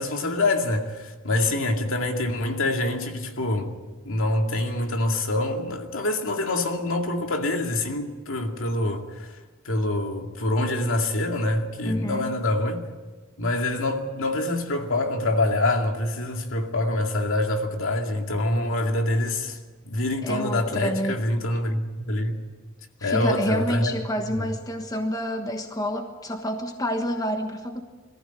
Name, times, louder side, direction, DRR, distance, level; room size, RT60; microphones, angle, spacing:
voice 1, 0.0-3.7 4.1-9.1 9.6-12.9 13.4-19.6 19.9-22.4 23.0-23.9 24.4-24.5, left 2 dB, 70° left, 2.4 m, -25 dB
voice 2, 11.8-12.4 20.2-21.2 23.0-27.8, equal, 15° left, 1.3 m, -28 dB
22.5 x 14.5 x 9.2 m
head